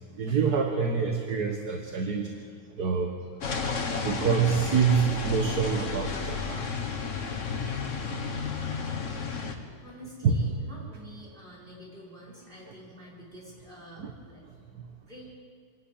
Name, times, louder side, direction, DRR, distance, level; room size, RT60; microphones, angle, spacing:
voice 1, 0.2-2.3 2.8-3.1 4.0-6.7 10.2-10.3 14.0-14.1, right 6 dB, 60° right, 3 dB, 1.8 m, -26 dB
sound 1, 3.4-9.5, left 5 dB, 45° left, 1.7 m, -32 dB
voice 2, 9.8-14.4 15.1-15.3, equal, 30° right, -5 dB, 5.7 m, -48 dB
25.5 x 11.5 x 9.1 m, 2.2 s
omnidirectional pair, 1.9 m